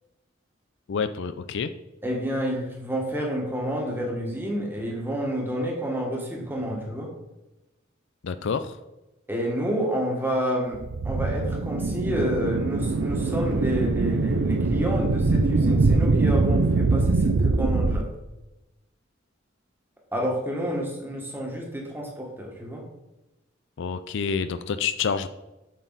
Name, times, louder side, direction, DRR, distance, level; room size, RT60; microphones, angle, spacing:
voice 1, 0.9-1.7 8.2-8.8 23.8-25.3, left 6 dB, 65° left, 11 dB, 0.4 m, -28 dB
voice 2, 2.0-7.1 9.3-18.1 20.1-22.8, equal, 10° right, -1 dB, 1.7 m, -29 dB
sound 1, 10.7-18.0, right 3 dB, 60° right, 0.5 m, -23 dB
7.5 x 6.1 x 4.1 m, 0.99 s
head